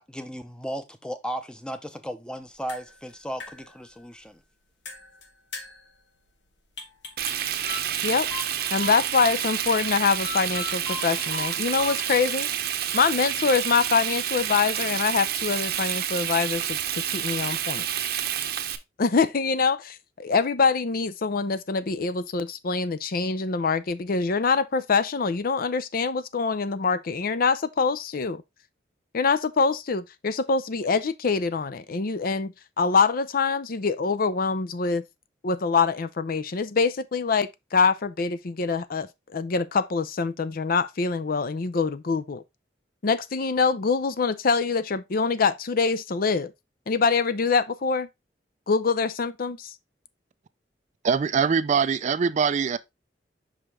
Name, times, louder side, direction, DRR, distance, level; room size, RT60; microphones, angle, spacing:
voice 1, 0.0-4.4, equal, 5° left, 0.8 m, -35 dB
sound 1, 2.4-11.0, left 4 dB, 80° left, 1.3 m, -47 dB
Frying (food), 7.2-18.8, right 10 dB, 60° right, 0.7 m, -29 dB
sound 2, 7.7-9.5 10.2-12.5, left 4 dB, 30° left, 1.8 m, -38 dB
voice 2, 8.7-12.5 12.9-17.9 19.0-28.4 29.1-35.0 35.4-42.4 43.0-46.5 46.9-48.1 48.7-49.7, left 5 dB, 55° left, 0.5 m, -25 dB
voice 3, 51.0-52.8, right 6 dB, 40° right, 0.3 m, -23 dB
5.6 x 5.0 x 3.5 m
head